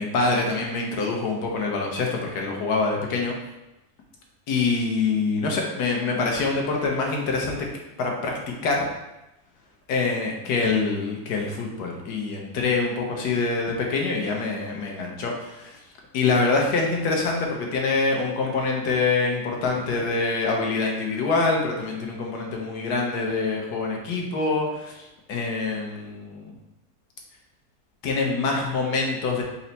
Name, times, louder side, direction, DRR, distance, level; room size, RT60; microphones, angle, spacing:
voice 1, 0.0-3.4 4.5-7.6 8.0-8.3 8.6-8.8 9.9-15.8 16.1-26.5 28.0-29.4, left 3 dB, 80° left, 0 dB, 1.3 m, -25 dB
4.3 x 2.1 x 3.9 m, 0.93 s
omnidirectional pair, 1.7 m